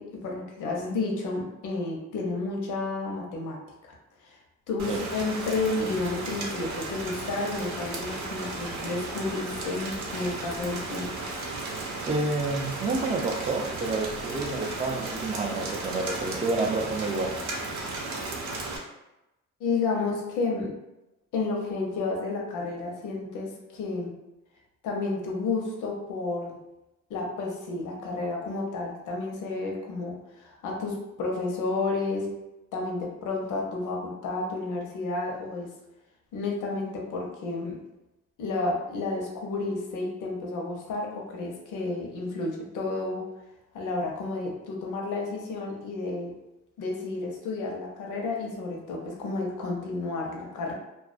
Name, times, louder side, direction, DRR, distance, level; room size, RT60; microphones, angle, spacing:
voice 1, 0.0-3.9 4.7-11.1 19.6-20.7 21.3-24.1 24.8-26.6 27.1-32.3 32.7-35.7 36.3-37.7 38.4-43.2 43.7-46.3 46.8-50.7, left 3 dB, 85° left, 0 dB, 0.6 m, -31 dB
Rain, 4.8-18.8, right 2 dB, 65° right, 0.6 m, -35 dB
voice 2, 12.1-17.4, right 3 dB, 20° right, 4 dB, 0.3 m, -29 dB
2.3 x 2.2 x 2.4 m, 0.95 s
cardioid pair, 90°, 30 cm